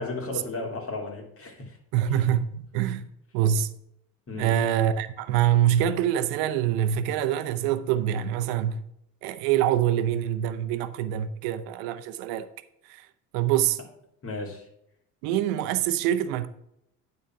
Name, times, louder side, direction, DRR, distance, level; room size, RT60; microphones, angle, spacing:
voice 1, 0.0-1.8 2.1-2.2 4.3-4.5 14.2-14.7, left 2 dB, 40° left, 2.7 m, -34 dB
voice 2, 1.9-3.0 3.3-3.7 4.4-8.8 9.2-12.5 12.9-13.1 13.3-13.8 15.2-16.5, right 10 dB, 85° right, 0.8 m, -25 dB
10.0 x 4.1 x 5.8 m
supercardioid pair, 90°, 35 cm